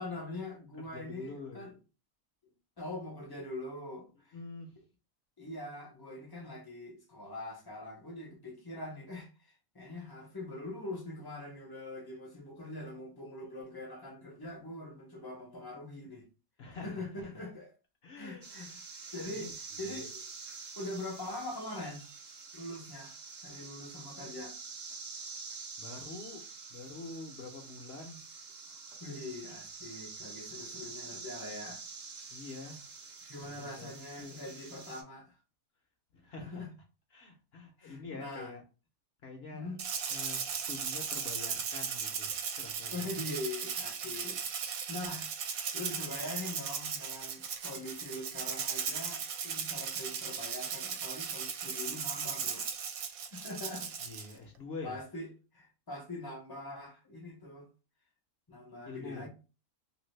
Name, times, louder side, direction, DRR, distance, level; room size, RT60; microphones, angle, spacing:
voice 1, 0.0-1.7 2.8-4.3 5.4-16.3 16.8-17.7 18.2-18.7 19.1-20.2 20.8-22.0 22.5-23.1 23.4-24.6 29.0-31.8 33.3-35.3 36.2-36.7 37.8-38.5 39.5-39.8 42.9-44.4 44.9-52.7 53.3-53.9 54.3-54.4 54.8-57.7 58.5-59.3, left 2 dB, 30° left, 0.4 m, -43 dB
voice 2, 0.9-1.7 4.3-4.8 16.6-17.1 18.0-18.9 19.3-20.0 25.8-26.4 26.7-28.3 32.3-32.8 33.4-34.4 36.1-36.7 37.1-38.6 39.2-39.7 40.1-43.1 54.0-55.0 58.9-59.3, left 3 dB, 60° left, 0.7 m, -46 dB
sound 1, 18.4-35.0, right 4 dB, 50° right, 0.5 m, -47 dB
Rattle (instrument), 39.8-54.3, right 6 dB, 75° right, 1.0 m, -37 dB
2.9 x 2.6 x 3.1 m
omnidirectional pair, 1.5 m